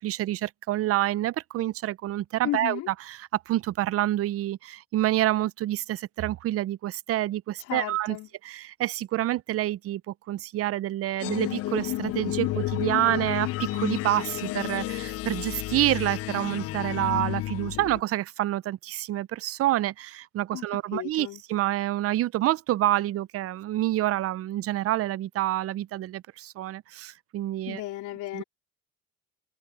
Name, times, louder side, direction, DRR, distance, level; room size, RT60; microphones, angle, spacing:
voice 1, 0.0-2.8 3.1-3.2 3.5-8.2 8.4-27.8 28.3-28.4, right 14 dB, 50° right, 0.5 m, -28 dB
voice 2, 2.4-2.9 7.6-8.3 20.5-21.4 27.7-28.4, left 16 dB, 70° left, 3.7 m, -34 dB
sound 1, 11.2-18.0, left 16 dB, 50° left, 0.5 m, -31 dB
supercardioid pair, 90°, 31 cm